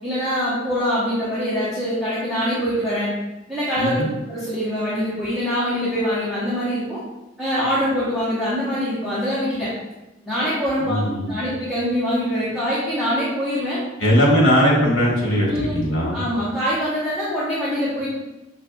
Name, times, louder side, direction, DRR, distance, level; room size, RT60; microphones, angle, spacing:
voice 1, 0.0-3.1 3.5-4.0 4.3-7.0 7.4-9.7 10.2-11.0 11.3-13.8 15.4-15.8 16.1-18.1, equal, ahead, -12 dB, 1.1 m, -24 dB
voice 2, 3.8-4.1 10.8-11.5 14.0-16.2, equal, 85° left, -4 dB, 1.4 m, -19 dB
6.5 x 2.6 x 2.3 m, 1.0 s
head